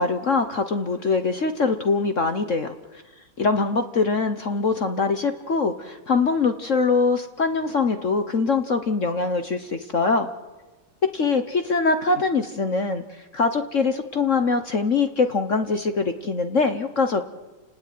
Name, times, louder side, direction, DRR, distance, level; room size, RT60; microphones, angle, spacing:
voice 1, 0.0-2.7 3.4-10.3 11.1-13.0 13.3-17.2, left 4 dB, 45° left, 8 dB, 1.2 m, -23 dB
29.5 x 18.5 x 9.4 m, 1.2 s
omnidirectional pair, 2.4 m